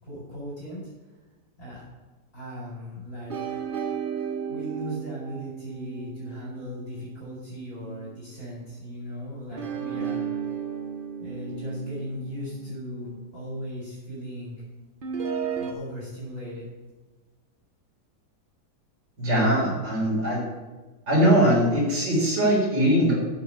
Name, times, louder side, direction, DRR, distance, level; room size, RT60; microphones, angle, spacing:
voice 1, 0.0-0.9 1.6-1.8 2.3-3.6 4.5-10.2 11.2-14.6 15.6-16.7, equal, 50° left, -7 dB, 4.8 m, -37 dB
sound 1, 3.3-7.9 9.5-13.7 15.0-15.7, right 7 dB, 40° right, 0.8 m, -34 dB
voice 2, 19.2-20.4 21.1-23.1, equal, 85° right, -3 dB, 4.8 m, -21 dB
10.0 x 8.7 x 5.6 m, 1.3 s
omnidirectional pair, 1.9 m